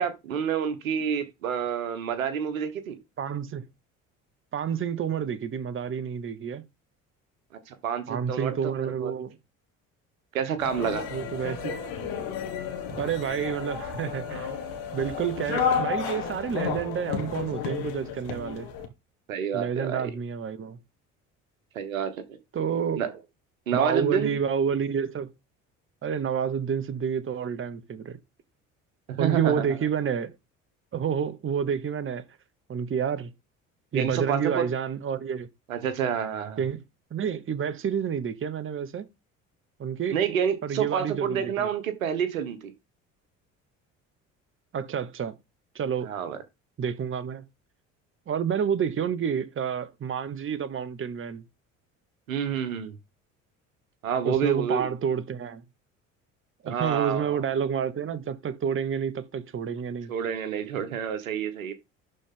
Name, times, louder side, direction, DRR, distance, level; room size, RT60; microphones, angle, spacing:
voice 1, 0.0-3.0 7.7-9.1 10.3-11.1 19.3-20.1 21.7-22.4 23.0-23.1 23.7-24.4 29.1-29.8 33.9-34.7 35.7-36.6 40.1-42.7 46.0-46.4 52.3-52.9 54.0-54.9 56.7-57.5 60.1-61.7, right 8 dB, 80° right, 1.2 m, -28 dB
voice 2, 3.2-3.6 4.5-6.6 8.1-9.3 11.1-11.8 13.0-14.5 14.9-18.7 19.5-20.8 22.5-23.1 23.7-25.3 26.0-28.2 29.2-30.3 30.9-32.2 32.7-33.3 33.9-35.5 36.6-36.8 37.1-39.1 39.8-40.2 40.6-41.7 44.7-45.3 45.7-46.1 46.8-47.5 48.3-51.4 54.2-55.6 56.6-60.1, right 7 dB, 30° right, 1.1 m, -29 dB
sound 1, 10.6-18.9, left 6 dB, 65° left, 1.9 m, -32 dB
12.0 x 4.2 x 3.8 m
figure-of-eight pair, 55°, 40 cm